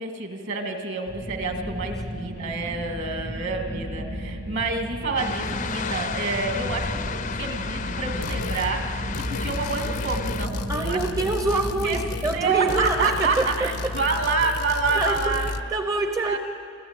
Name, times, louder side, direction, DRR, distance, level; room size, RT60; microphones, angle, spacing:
voice 1, 0.0-11.0 11.5-12.0 12.3-15.6 16.3-16.4, right 4 dB, 55° right, 5 dB, 2.2 m, -28 dB
sound 1, 1.1-14.3, equal, 75° right, 6.6 m, -34 dB
sound 2, 5.2-10.5, left 6 dB, 35° left, 0.5 m, -33 dB
sound 3, 8.2-8.7 9.1-12.4 12.7-15.6, left 3 dB, 85° left, 0.9 m, -33 dB
voice 2, 10.7-13.9 14.9-15.4 15.7-16.4, right 3 dB, 15° right, 6 dB, 0.7 m, -26 dB
29.0 x 14.0 x 8.9 m, 2.7 s
head